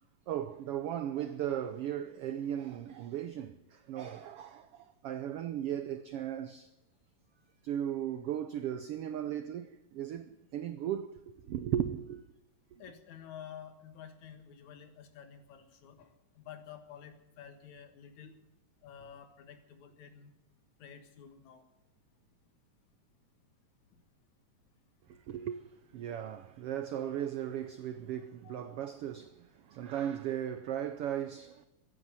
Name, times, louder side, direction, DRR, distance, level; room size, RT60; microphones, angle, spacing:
voice 1, 0.3-6.7 7.6-12.2 25.1-25.6 25.9-31.7, right 10 dB, 85° right, 1.3 m, -37 dB
voice 2, 12.8-16.1 16.4-18.4 18.8-20.3 20.8-21.6 28.4-28.8, left 8 dB, 70° left, 2.9 m, -50 dB
14.5 x 10.0 x 9.6 m
omnidirectional pair, 3.5 m